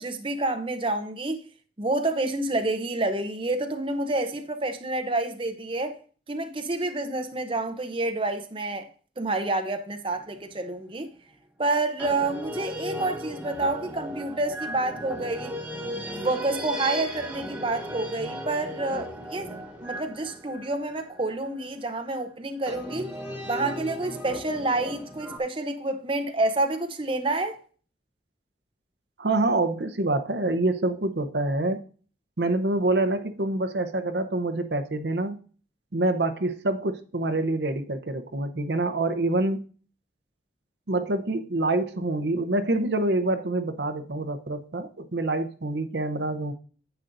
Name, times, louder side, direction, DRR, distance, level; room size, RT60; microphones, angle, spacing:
voice 1, 0.0-1.4 1.8-6.0 6.3-8.9 9.2-11.1 11.6-15.5 16.1-19.5 19.8-23.1 23.5-27.6, right 2 dB, 30° right, 0.7 m, -28 dB
sound 1, 10.2-10.7 12.0-21.6 22.7-25.4, equal, 5° right, 1.6 m, -36 dB
voice 2, 29.2-31.8 32.4-35.4 35.9-39.6 40.9-46.5, right 2 dB, 65° right, 0.8 m, -26 dB
9.9 x 8.1 x 2.6 m
head